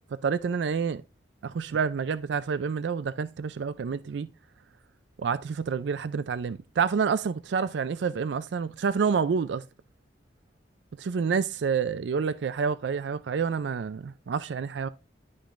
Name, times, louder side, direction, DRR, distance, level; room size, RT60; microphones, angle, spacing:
voice 1, 0.2-1.0 1.4-4.3 5.2-9.6 11.0-14.9, right 6 dB, 75° right, 0.4 m, -28 dB
10.5 x 5.2 x 2.5 m
head